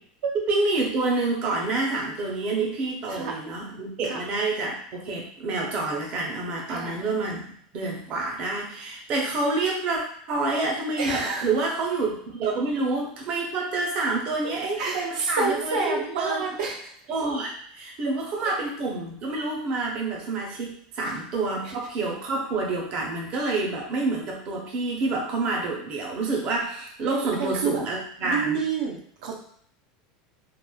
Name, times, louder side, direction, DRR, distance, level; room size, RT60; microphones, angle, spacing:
voice 1, 0.3-7.5 7.7-10.0 10.3-16.6 17.1-28.6, right 3 dB, 30° right, -1 dB, 0.5 m, -28 dB
voice 2, 11.0-11.5 12.4-12.5 14.8-16.8 27.3-27.8 28.2-29.4, right 4 dB, 85° right, 0 dB, 0.6 m, -28 dB
2.9 x 2.0 x 2.2 m, 0.64 s
supercardioid pair, 175°, 4 cm